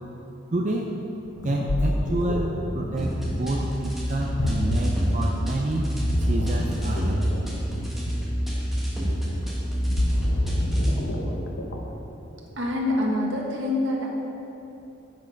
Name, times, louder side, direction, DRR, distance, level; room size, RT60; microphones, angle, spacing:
voice 1, 0.5-1.0 1.4-5.9 6.2-7.3, right 1 dB, 35° right, 0 dB, 0.5 m, -28 dB
Ocean, 1.2-12.0, left 1 dB, 80° left, 0.9 m, -29 dB
sound 1, 3.0-11.0, equal, ahead, 1.4 m, -28 dB
voice 2, 12.6-14.1, left 1 dB, 75° right, -2 dB, 1.5 m, -25 dB
7.9 x 7.4 x 5.2 m, 2.9 s
head